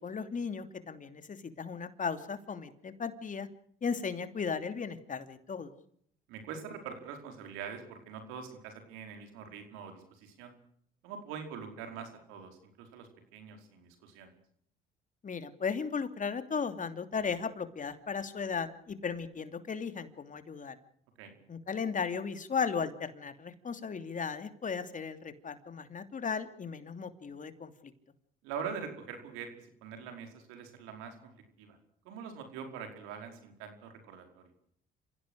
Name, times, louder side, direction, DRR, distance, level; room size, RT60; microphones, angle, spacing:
voice 1, 0.0-3.5 3.8-5.7 15.2-20.8 21.5-27.9, left 5 dB, 40° left, 10 dB, 2.9 m, -36 dB
voice 2, 6.3-10.5 11.0-14.3 21.2-21.4 28.4-31.2 31.6-31.8 32.1-34.4, right 6 dB, 90° right, 6 dB, 5.1 m, -44 dB
28.0 x 16.5 x 6.5 m, 0.65 s
supercardioid pair, 75°, 20 cm